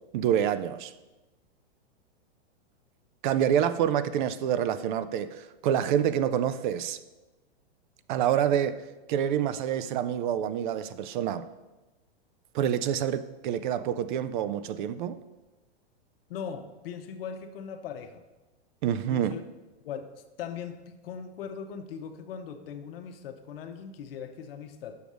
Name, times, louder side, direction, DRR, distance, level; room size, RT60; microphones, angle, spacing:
voice 1, 0.1-0.9 3.2-7.0 8.1-11.5 12.5-15.2 18.8-19.3, right 9 dB, 50° right, 0.5 m, -27 dB
voice 2, 16.3-18.2 19.1-19.4 19.8-25.0, left 7 dB, 65° left, 0.9 m, -39 dB
6.5 x 5.2 x 6.2 m
hypercardioid pair, 130°, 31 cm